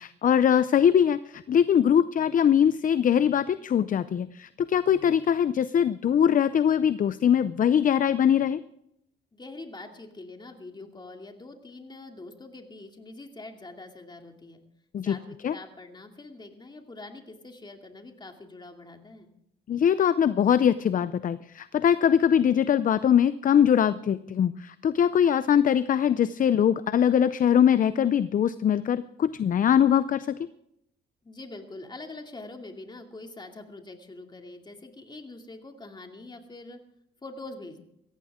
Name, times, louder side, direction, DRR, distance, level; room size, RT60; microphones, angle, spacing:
voice 1, 0.0-8.6 14.9-15.2 15.4-15.5 19.7-30.3, left 8 dB, 45° left, 15 dB, 0.5 m, -22 dB
voice 2, 9.3-14.6 15.0-19.3 31.2-36.8 37.2-37.8, left 2 dB, 20° left, 4 dB, 2.5 m, -44 dB
17.0 x 15.0 x 3.6 m, 0.78 s
cardioid pair, 90°, 20 cm